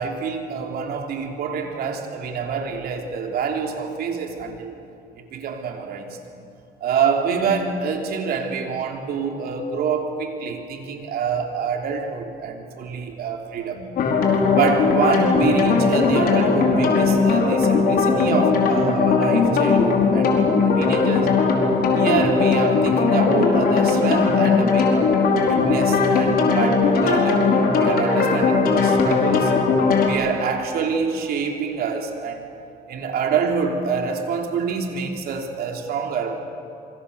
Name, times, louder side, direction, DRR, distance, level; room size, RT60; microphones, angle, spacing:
voice 1, 0.0-4.8 5.2-6.2 6.8-14.0 14.5-21.3 21.9-25.0 25.5-27.5 27.8-29.5 30.1-32.4 32.9-36.4, right 5 dB, 65° right, 3 dB, 3.5 m, -26 dB
sound 1, 14.0-30.1, left 4 dB, 60° left, 4.7 m, -18 dB
26.5 x 25.0 x 7.1 m, 2.6 s
cardioid pair, 110°, 17 cm